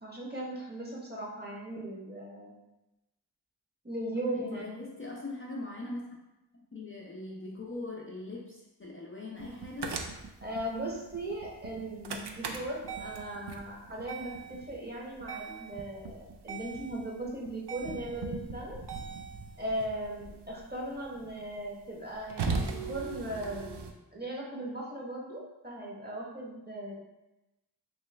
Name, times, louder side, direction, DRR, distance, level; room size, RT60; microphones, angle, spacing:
voice 1, 0.0-2.5 3.8-4.6 10.4-18.8 19.6-26.9, right 1 dB, 25° right, -4 dB, 0.9 m, -38 dB
voice 2, 4.2-6.0 6.5-10.0, left 2 dB, 30° left, -3 dB, 0.5 m, -41 dB
Various Int. Car Noises, 9.4-23.9, right 4 dB, 70° right, 0.5 m, -39 dB
3.0 x 3.0 x 3.2 m, 0.98 s
wide cardioid pair, 45°, 42 cm